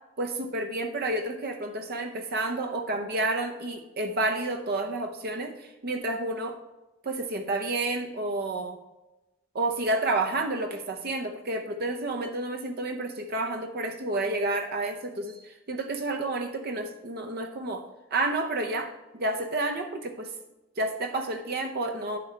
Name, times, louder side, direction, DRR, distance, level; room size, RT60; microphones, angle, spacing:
voice 1, 0.2-6.6 7.0-8.8 9.5-17.8 18.1-20.3 20.8-22.2, right 2 dB, 50° right, 5 dB, 0.7 m, -30 dB
9.9 x 7.7 x 3.3 m, 1.0 s
head